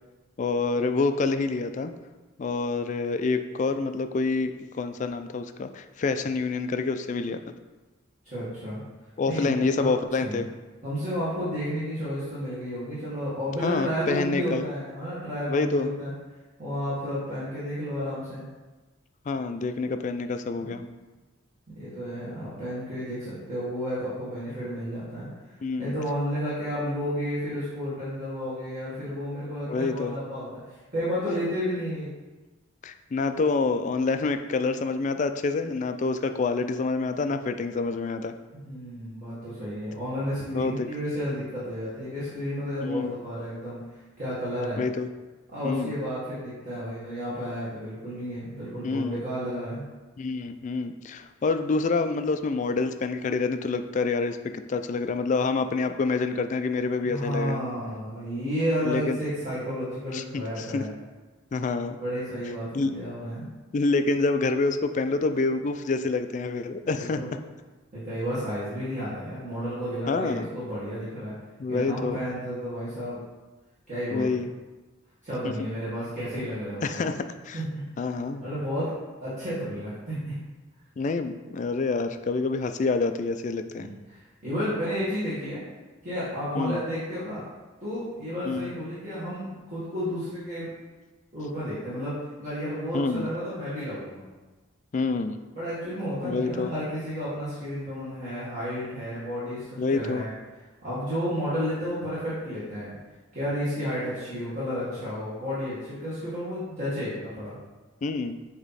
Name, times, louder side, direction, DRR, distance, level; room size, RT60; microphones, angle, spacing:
voice 1, 0.4-1.9 2.4-4.5 4.8-7.4 9.2-10.5 13.6-14.6 15.5-15.9 19.3-20.8 25.6-25.9 29.7-30.2 32.8-38.3 40.4-40.9 42.8-43.1 44.8-45.1 45.6-46.0 48.8-49.2 50.2-57.6 58.8-59.2 60.1-60.8 61.5-62.0 62.7-62.9 63.7-67.2 70.1-70.5 71.6-72.2 74.1-74.5 76.8-77.1 77.4-77.6 78.0-78.4 81.0-83.9 86.6-86.8 88.4-88.7 92.9-93.3 94.9-95.4 96.2-96.7 99.8-100.2 108.0-108.4, left 3 dB, 35° left, 8 dB, 0.3 m, -27 dB
voice 2, 8.2-8.8 9.3-10.4 10.8-16.1 16.6-18.4 20.6-20.9 21.7-32.1 38.6-44.8 45.5-49.8 57.0-60.9 62.0-63.5 66.9-67.3 67.9-71.3 71.7-73.2 73.9-74.3 75.2-77.0 77.5-77.8 78.4-78.9 79.2-80.4 83.8-85.6 86.0-87.4 87.8-90.7 91.3-94.2 95.6-100.3 100.8-102.9 103.3-107.5, equal, 35° right, -12 dB, 1.8 m, -32 dB
8.0 x 3.0 x 4.1 m, 1.2 s
head